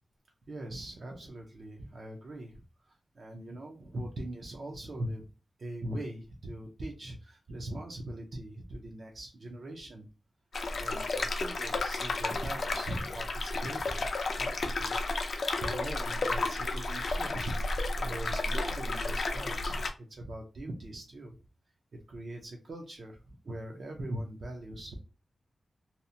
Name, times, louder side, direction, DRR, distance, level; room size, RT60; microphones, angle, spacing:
voice 1, 0.5-5.3 5.6-10.1 10.7-14.1 14.4-15.0 15.6-17.6 18.0-21.4 22.1-25.0, right 1 dB, 55° right, 0 dB, 0.4 m, -41 dB
sound 1, 10.5-19.9, left 2 dB, 60° left, 0.4 m, -32 dB
2.7 x 2.0 x 2.5 m, 0.33 s
wide cardioid pair, 160°, 0 cm